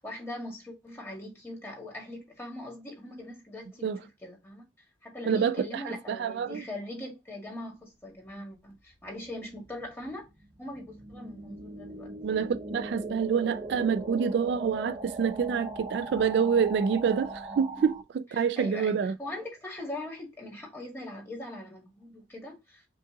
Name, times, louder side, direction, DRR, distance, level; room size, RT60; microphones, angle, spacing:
voice 1, 0.0-4.6 5.0-10.3 10.6-12.1 17.8-17.9 18.3-22.8, left 1 dB, 15° left, 1.8 m, -41 dB
voice 2, 5.3-6.6 12.2-19.1, right 6 dB, 65° right, 0.3 m, -27 dB
sound 1, 8.7-18.0, right 2 dB, 25° right, 0.6 m, -40 dB
5.2 x 2.5 x 3.7 m
head